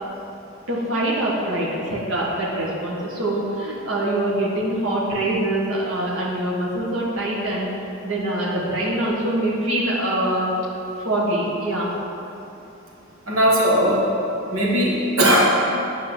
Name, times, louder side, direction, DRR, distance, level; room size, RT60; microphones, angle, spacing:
voice 1, 0.7-7.7 8.0-10.5 11.0-11.9, right 1 dB, 70° right, -6 dB, 1.5 m, -24 dB
voice 2, 13.3-14.0 14.5-15.5, equal, 90° right, -4 dB, 1.6 m, -18 dB
9.2 x 3.9 x 7.2 m, 2.8 s
head